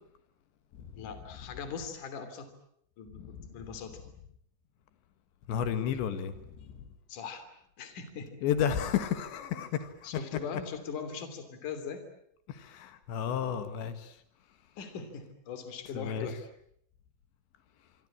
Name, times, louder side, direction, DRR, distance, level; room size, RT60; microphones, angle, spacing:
voice 1, 0.9-2.5 3.0-4.0 7.1-7.5 7.8-8.4 10.0-12.0 14.8-16.4, left 6 dB, 45° left, 9 dB, 4.2 m, -40 dB
voice 2, 3.2-3.5 5.5-6.8 8.4-9.9 12.5-14.1 15.9-16.3, left 8 dB, 75° left, 11 dB, 3.9 m, -32 dB
26.5 x 24.0 x 8.7 m, 0.71 s
omnidirectional pair, 5.4 m